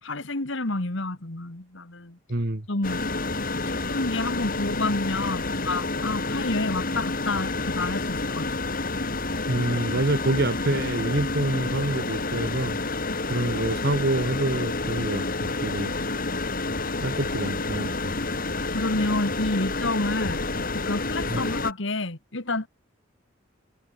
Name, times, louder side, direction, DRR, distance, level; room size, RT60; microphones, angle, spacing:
voice 1, 0.0-2.2 2.7-3.0 3.8-8.5 18.7-20.4 20.7-22.7, left 2 dB, 60° left, 2.1 m, -29 dB
voice 2, 2.3-2.7 9.5-12.8 13.3-15.9 17.0-18.1 21.3-21.4, right 1 dB, 50° right, 1.6 m, -27 dB
sound 1, 2.8-21.7, left 3 dB, 45° left, 3.2 m, -29 dB
head